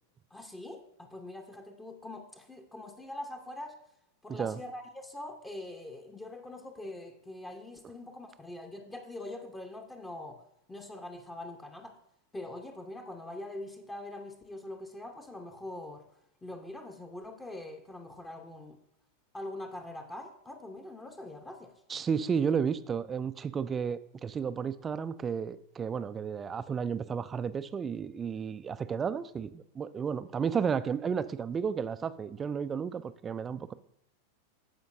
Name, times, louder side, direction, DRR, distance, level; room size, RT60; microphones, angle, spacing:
voice 1, 0.3-3.8 4.2-10.4 10.7-12.0 12.3-16.0 16.4-18.8 19.3-21.7, left 1 dB, 10° left, 5 dB, 0.8 m, -43 dB
voice 2, 21.9-33.7, right 6 dB, 20° right, 14 dB, 0.4 m, -32 dB
14.5 x 5.1 x 2.6 m, 0.79 s
figure-of-eight pair, 90°, 0 cm